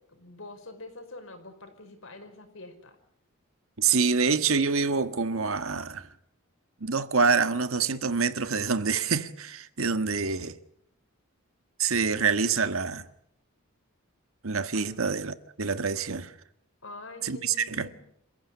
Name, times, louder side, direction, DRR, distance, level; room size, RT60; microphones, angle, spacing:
voice 1, 0.0-3.0 14.7-14.9 16.8-18.0, left 2 dB, 65° left, 5.5 m, -45 dB
voice 2, 3.8-6.1 6.8-10.5 11.8-13.0 14.4-16.3 17.2-17.9, right 5 dB, 75° right, 1.5 m, -26 dB
28.5 x 15.5 x 9.9 m
head